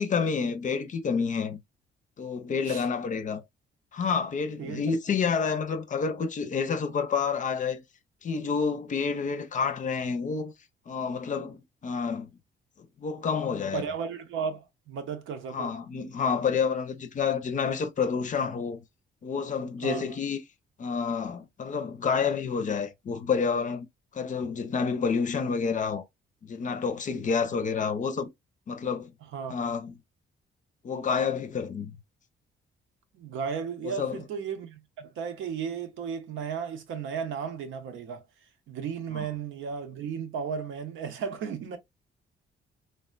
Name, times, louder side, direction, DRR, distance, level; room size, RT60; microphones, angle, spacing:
voice 1, 0.0-1.6 2.2-3.4 3.9-7.8 8.2-10.5 10.9-12.3 13.0-13.8 15.5-18.8 19.2-20.4 20.8-23.9 24.1-26.1 26.4-28.3 28.7-29.1 29.5-30.0 30.8-32.0 33.8-34.2 39.1-39.3, left 5 dB, 40° left, 0.5 m, -29 dB
voice 2, 13.7-15.7 19.8-20.1 29.2-29.7 33.1-38.2 38.7-41.8, right 6 dB, 75° right, 0.7 m, -34 dB
3.3 x 2.1 x 2.3 m
cardioid pair, 90°, 20 cm